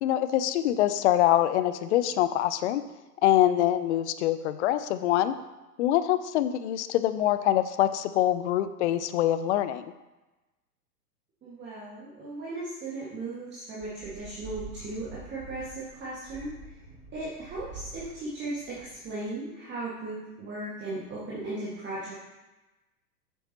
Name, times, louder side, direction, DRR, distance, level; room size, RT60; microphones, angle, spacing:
voice 1, 0.0-2.8 3.2-5.3 5.8-9.9, left 12 dB, 45° left, 12 dB, 0.6 m, -24 dB
voice 2, 11.4-16.6 17.1-22.2, right 2 dB, 20° right, -7 dB, 1.8 m, -37 dB
sound 1, 13.8-19.3, right 3 dB, 40° right, 2.2 m, -46 dB
9.1 x 7.1 x 2.9 m, 1.1 s
figure-of-eight pair, 100°, 48 cm